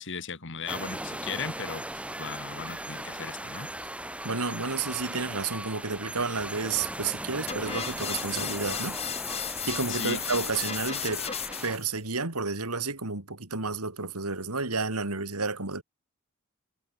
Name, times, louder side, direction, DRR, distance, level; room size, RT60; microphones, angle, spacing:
voice 1, 0.0-3.7 9.9-10.2, left 5 dB, 55° left, 2.0 m, -37 dB
sound 1, 0.7-11.8, right 1 dB, 5° right, 7.5 m, -38 dB
voice 2, 4.2-9.0 9.4-11.3 11.6-15.8, right 4 dB, 85° right, 3.3 m, -31 dB
sound 2, 7.5-11.9, left 8 dB, 30° left, 1.7 m, -34 dB
head